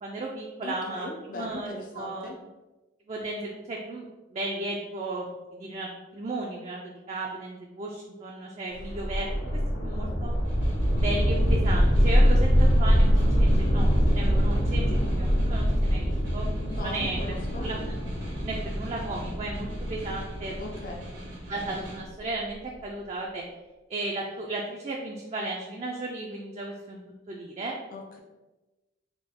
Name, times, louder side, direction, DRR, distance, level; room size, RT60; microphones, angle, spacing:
voice 1, 0.0-2.3 3.1-4.1 4.3-10.3 10.9-16.5 16.8-17.8 18.4-20.6 21.5-23.4 23.9-27.0 27.3-27.7, right 2 dB, 35° right, -1 dB, 0.3 m, -35 dB
voice 2, 0.6-2.4 16.7-17.7 20.6-21.1 27.9-28.2, left 2 dB, 45° left, 1 dB, 0.5 m, -39 dB
sound 1, 8.8-21.8, equal, 70° left, 0.8 m, -24 dB
Snare drum, 10.3-22.1, equal, 80° right, 1.0 m, -45 dB
3.5 x 2.1 x 3.6 m, 1.1 s
head